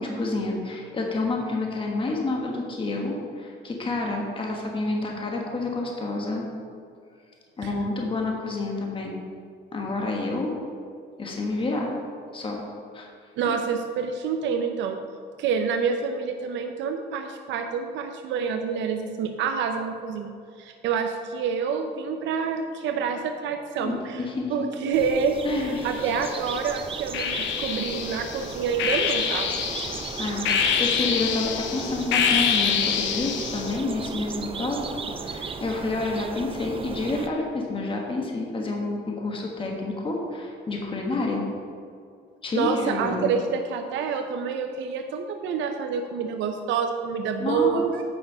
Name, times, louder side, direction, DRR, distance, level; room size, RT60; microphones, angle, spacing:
voice 1, 0.0-6.5 7.6-9.2 9.7-10.5 11.2-11.9 12.3-12.6 12.9-13.1 23.8-24.5 25.4-25.8 30.2-41.5 42.4-43.3 47.4-47.9, left 2 dB, 30° left, 0 dB, 1.3 m, -29 dB
voice 2, 13.4-15.0 15.4-24.2 24.5-29.6 42.5-48.0, right 6 dB, 85° right, 5 dB, 0.6 m, -27 dB
sound 1, 24.9-37.3, right 5 dB, 30° right, 0.5 m, -36 dB
sound 2, 25.8-26.5 27.1-33.8, left 7 dB, 85° left, 0.8 m, -26 dB
8.1 x 5.5 x 5.6 m, 2.3 s
cardioid pair, 110°, 19 cm